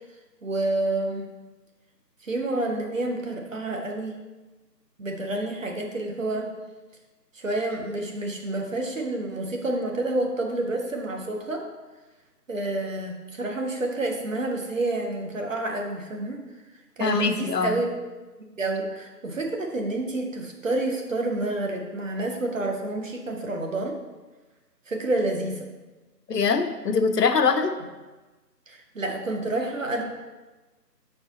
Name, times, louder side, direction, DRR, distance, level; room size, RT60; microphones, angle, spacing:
voice 1, 0.4-1.3 2.2-4.2 5.0-6.5 7.3-11.6 12.5-16.4 17.0-17.9 18.4-24.0 24.9-25.7 28.7-30.0, right 2 dB, 50° right, 2 dB, 0.9 m, -29 dB
voice 2, 17.0-17.8 26.3-27.7, left 5 dB, 70° left, 8 dB, 0.7 m, -23 dB
5.5 x 4.5 x 4.0 m, 1.2 s
figure-of-eight pair, 160°, 50 cm